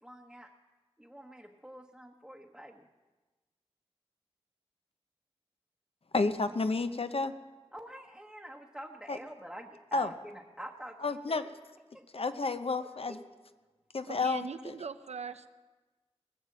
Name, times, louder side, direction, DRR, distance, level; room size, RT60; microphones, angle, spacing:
voice 1, 0.0-0.5 1.0-2.9 7.7-11.5 11.9-12.0 12.8-13.2, equal, 5° right, -1 dB, 1.1 m, -47 dB
voice 2, 6.1-7.3 9.1-9.2 9.9-10.1 11.0-11.4 12.1-13.2 13.9-14.8, left 3 dB, 60° left, 10 dB, 0.8 m, -31 dB
voice 3, 14.1-15.5, right 5 dB, 90° right, 11 dB, 0.6 m, -40 dB
19.5 x 7.3 x 7.5 m, 1.3 s
wide cardioid pair, 60°, 11 cm